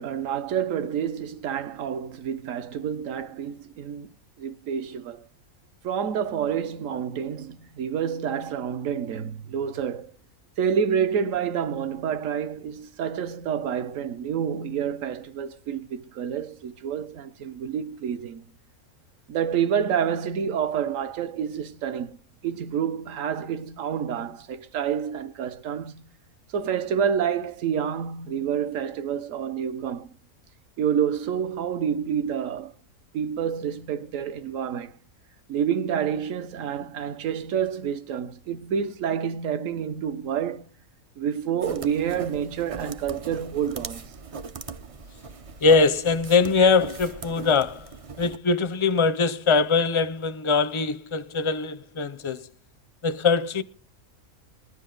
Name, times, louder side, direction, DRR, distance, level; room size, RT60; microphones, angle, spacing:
voice 1, 0.0-4.1 4.4-5.2 5.8-10.1 10.6-18.4 19.3-22.2 22.4-26.1 26.5-30.1 30.8-32.7 33.1-35.0 35.5-40.7 41.2-44.0, right 8 dB, 65° right, 1.1 m, -28 dB
sound 1, 41.6-48.4, right 5 dB, 45° right, 0.4 m, -39 dB
voice 2, 45.6-47.9 48.2-52.5 53.0-53.6, left 4 dB, 40° left, 0.4 m, -22 dB
20.0 x 10.0 x 3.8 m
omnidirectional pair, 1.5 m